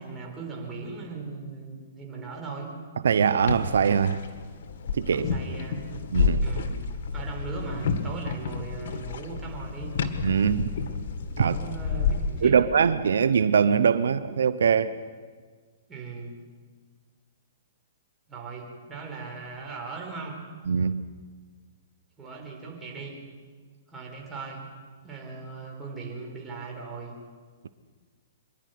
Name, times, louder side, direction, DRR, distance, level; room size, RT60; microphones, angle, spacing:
voice 1, 0.0-2.7 5.1-5.8 6.4-6.7 7.1-10.0 11.4-12.6 15.9-16.4 18.3-20.4 22.2-23.2 23.9-24.6 25.0-27.1, right 4 dB, 15° right, -1 dB, 4.3 m, -38 dB
voice 2, 3.0-4.2 4.9-5.3 6.1-6.4 10.2-10.7 11.4-11.6 12.4-15.0 20.7-21.0, right 6 dB, 85° right, 13 dB, 0.8 m, -22 dB
sound 1, 3.4-12.5, left 5 dB, 60° left, 1.9 m, -30 dB
25.5 x 11.0 x 9.4 m, 1.5 s
hypercardioid pair, 150°, 0 cm